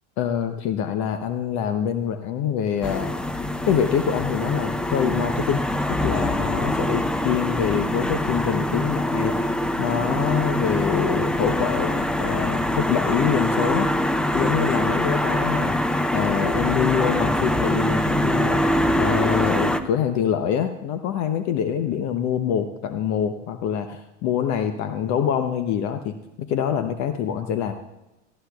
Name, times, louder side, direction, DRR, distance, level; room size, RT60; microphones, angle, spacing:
voice 1, 0.2-3.1 3.7-5.6 6.0-9.5 9.8-13.9 14.3-15.8 16.1-18.6 19.0-27.7, left 8 dB, 50° left, 8 dB, 0.9 m, -25 dB
sound 1, 2.8-19.8, left 1 dB, ahead, 0.5 m, -24 dB
19.0 x 13.5 x 2.4 m, 0.96 s
hypercardioid pair, 85°, 37 cm